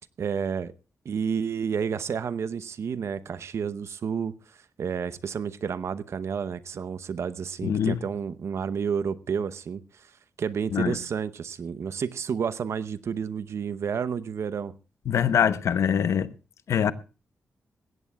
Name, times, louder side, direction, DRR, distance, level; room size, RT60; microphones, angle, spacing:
voice 1, 0.2-0.7 1.0-4.3 4.8-9.8 10.4-14.7, right 6 dB, 65° right, 0.8 m, -30 dB
voice 2, 7.6-8.0 10.7-11.0 15.1-16.3 16.7-16.9, left 8 dB, 75° left, 0.9 m, -23 dB
20.5 x 16.0 x 2.3 m
cardioid pair, 75°, 5 cm